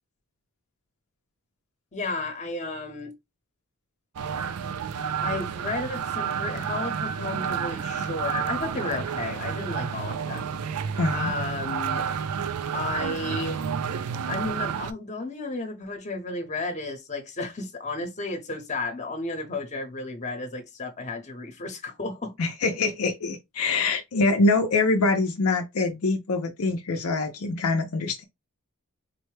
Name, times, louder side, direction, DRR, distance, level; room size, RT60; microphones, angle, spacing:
voice 1, 1.9-3.1 5.2-10.5 11.1-12.0 12.7-13.6 14.3-22.3, left 3 dB, 35° left, 0.9 m, -33 dB
sound 1, 4.2-14.9, right 7 dB, 90° right, 0.4 m, -30 dB
voice 2, 10.9-11.3 22.4-28.2, left 3 dB, 70° left, 0.6 m, -24 dB
4.1 x 2.1 x 3.1 m
head